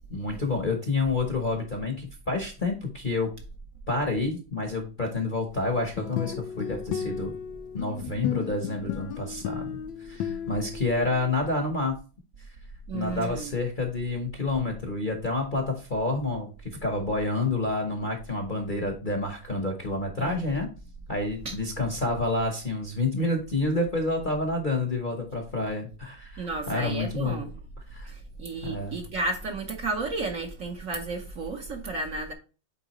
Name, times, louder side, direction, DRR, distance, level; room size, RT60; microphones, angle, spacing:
voice 1, 0.1-3.3 3.9-7.3 7.7-12.0 12.9-20.7 21.1-27.4 27.9-28.1 28.6-29.0, left 2 dB, 35° left, 0.9 m, -29 dB
sound 1, 5.8-11.3, left 8 dB, 90° left, 1.4 m, -34 dB
voice 2, 12.9-13.5 20.2-20.6 21.4-21.6 26.4-27.5 28.0-32.3, right 3 dB, 50° right, 1.1 m, -33 dB
8.7 x 3.6 x 3.0 m
omnidirectional pair, 2.1 m